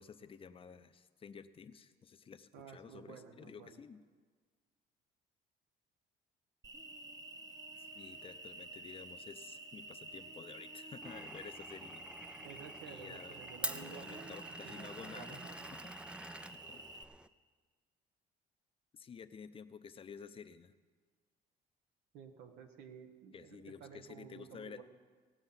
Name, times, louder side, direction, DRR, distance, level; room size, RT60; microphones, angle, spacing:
voice 1, 0.0-4.0 7.8-12.0 12.3-12.4 12.9-13.4 13.7-15.4 15.7-15.9 16.5-16.9 18.9-20.7 23.3-24.8, left 6 dB, 35° left, 11 dB, 0.6 m, -52 dB
voice 2, 2.5-3.8 12.4-15.8 22.1-24.8, right 7 dB, 90° right, 6 dB, 1.4 m, -53 dB
Cricket, 6.6-17.0, right 2 dB, 20° right, 0.9 m, -50 dB
Glass, 11.0-17.3, right 1 dB, 5° right, 0.4 m, -47 dB
18.0 x 8.0 x 5.7 m, 1.5 s
cardioid pair, 110°, 17 cm